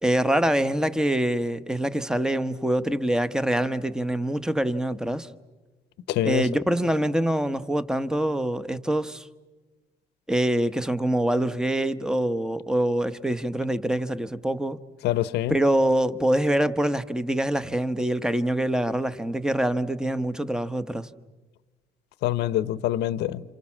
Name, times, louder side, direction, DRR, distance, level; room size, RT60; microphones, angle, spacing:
voice 1, 0.0-5.3 6.2-9.3 10.3-14.8 15.5-21.1, right 1 dB, 5° right, 1.0 m, -25 dB
voice 2, 6.1-6.5 15.0-15.6 22.2-23.4, left 13 dB, 80° left, 0.9 m, -25 dB
29.5 x 27.5 x 7.4 m
cardioid pair, 110°, 17 cm